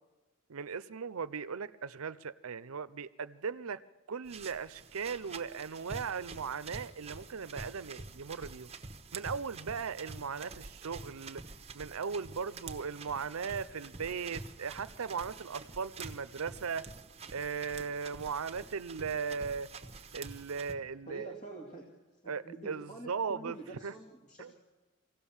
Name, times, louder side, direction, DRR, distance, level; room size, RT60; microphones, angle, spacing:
voice 1, 0.5-8.7 9.1-11.4 11.7-16.9 17.3-19.7 20.1-21.3 22.3-23.6 23.8-23.9 24.4-24.5, right 6 dB, 80° right, 15 dB, 0.6 m, -38 dB
sound 1, 4.2-20.7, right 4 dB, 30° right, 1.1 m, -47 dB
voice 2, 21.1-24.5, right 3 dB, 35° left, -1 dB, 2.3 m, -47 dB
24.5 x 16.5 x 7.2 m, 1.2 s
head